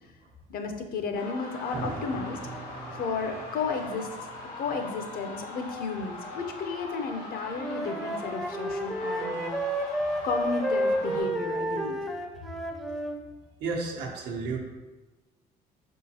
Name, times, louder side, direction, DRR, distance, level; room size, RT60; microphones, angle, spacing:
voice 1, 0.5-2.4 2.9-4.1 4.6-9.6 10.2-12.0, left 4 dB, 60° left, 5 dB, 0.6 m, -33 dB
sound 1, 1.1-11.2, left 2 dB, 80° left, 1.5 m, -41 dB
sound 2, 1.7-6.4, right 3 dB, 50° right, 0.8 m, -43 dB
Wind instrument woodwind instrument, 7.5-13.2, right 1 dB, ahead, 0.5 m, -30 dB
voice 2, 13.6-14.6, right 4 dB, 85° right, 1 dB, 0.8 m, -32 dB
5.1 x 3.6 x 2.8 m, 1.2 s
cardioid pair, 110°, 17 cm